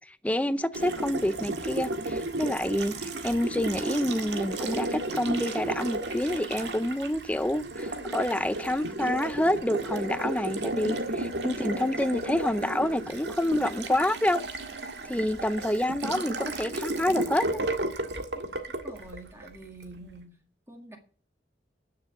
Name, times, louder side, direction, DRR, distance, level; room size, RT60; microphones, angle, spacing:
voice 1, 0.1-14.4 15.0-17.6, left 1 dB, 10° left, 0.5 m, -28 dB
Water tap faucet, 0.7-19.9, right 2 dB, 75° right, 1.8 m, -33 dB
voice 2, 18.7-20.4 20.7-21.0, right 1 dB, 15° right, 2.0 m, -46 dB
11.0 x 6.8 x 7.1 m
head